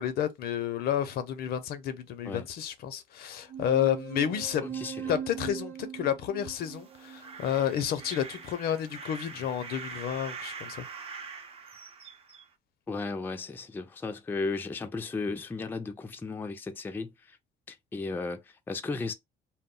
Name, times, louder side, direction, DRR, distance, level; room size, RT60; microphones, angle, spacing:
voice 1, 0.0-4.7 5.1-10.8, left 9 dB, 65° left, 0.5 m, -30 dB
sound 1, 3.5-8.4, right 9 dB, 75° right, 0.7 m, -41 dB
voice 2, 4.6-5.2 12.9-17.4 17.7-19.1, left 3 dB, 10° left, 0.3 m, -35 dB
sound 2, 6.5-12.5, right 5 dB, 35° right, 0.6 m, -44 dB
2.2 x 2.0 x 3.7 m
cardioid pair, 110°, 17 cm